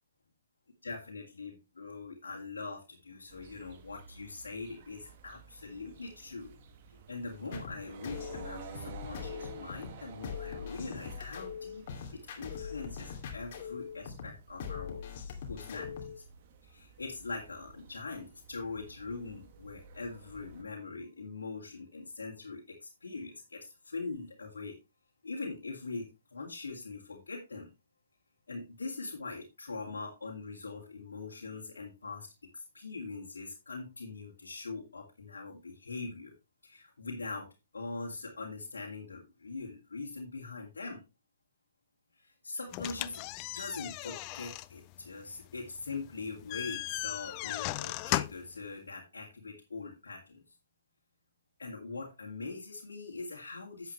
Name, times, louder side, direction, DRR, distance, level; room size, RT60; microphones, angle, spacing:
voice 1, 0.8-6.5 6.9-12.1 12.4-15.0 15.4-16.2 16.6-24.8 25.2-27.7 28.5-36.3 36.6-37.5 37.7-41.0 42.2-43.2 43.5-50.6 51.6-53.9, left 3 dB, 85° left, -1 dB, 2.3 m, -42 dB
sound 1, 3.3-20.6, right 6 dB, 45° right, 1.9 m, -52 dB
sound 2, 7.5-16.2, left 7 dB, 50° left, 2.5 m, -42 dB
sound 3, 42.7-48.6, left 18 dB, 35° left, 0.5 m, -37 dB
10.0 x 8.1 x 3.2 m, 0.25 s
hypercardioid pair, 135°, 0 cm